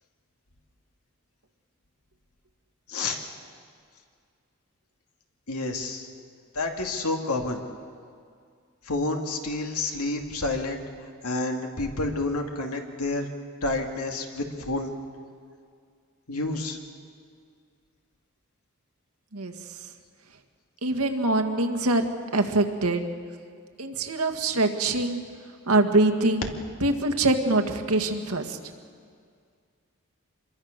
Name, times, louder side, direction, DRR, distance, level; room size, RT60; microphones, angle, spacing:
voice 1, 2.9-3.2 5.5-6.1 6.5-7.6 8.9-10.8 11.2-13.3 13.6-14.9 16.3-16.8, left 2 dB, 85° left, 3 dB, 2.4 m, -29 dB
voice 2, 20.8-22.0 22.3-23.0 23.8-25.2 25.7-26.4 26.8-28.6, right 2 dB, 80° right, 5 dB, 1.8 m, -24 dB
26.5 x 22.5 x 6.7 m, 2.2 s
head